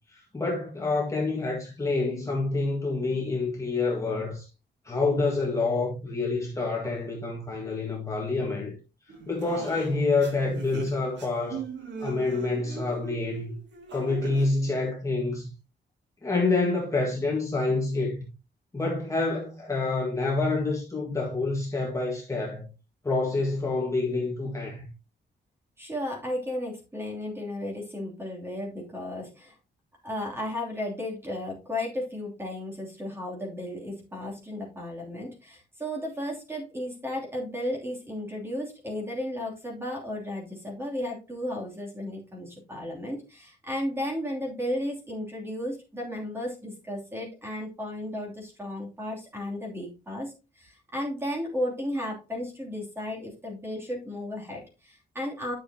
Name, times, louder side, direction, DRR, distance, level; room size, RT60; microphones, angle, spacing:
voice 1, 0.1-4.5 4.8-8.7 9.3-11.6 12.0-13.5 13.9-15.5 16.2-18.2 18.7-22.7 23.0-24.9, left 3 dB, 15° left, 1.7 m, -27 dB
sound 1, 9.1-14.5, right 4 dB, 75° right, 2.3 m, -39 dB
voice 2, 25.8-29.6 30.0-55.5, left 1 dB, 15° right, 3.0 m, -34 dB
10.5 x 6.3 x 2.9 m
wide cardioid pair, 170°, 19 cm